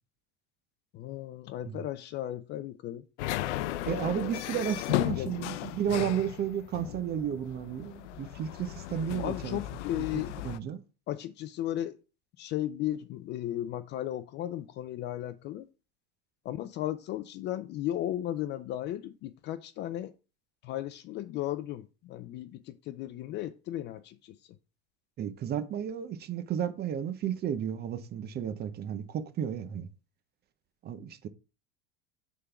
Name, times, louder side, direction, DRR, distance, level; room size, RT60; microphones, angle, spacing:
voice 1, 0.9-3.0 5.1-5.4 9.2-10.3 11.1-12.0 12.4-15.7 16.4-20.1 20.6-24.5, left 13 dB, 30° left, 0.4 m, -35 dB
sound 1, 3.2-10.6, left 15 dB, 85° left, 0.5 m, -35 dB
voice 2, 3.9-9.6 10.1-10.8 25.2-29.9 30.8-31.3, right 9 dB, 30° right, 0.7 m, -33 dB
6.6 x 3.8 x 5.8 m
supercardioid pair, 135°, 35 cm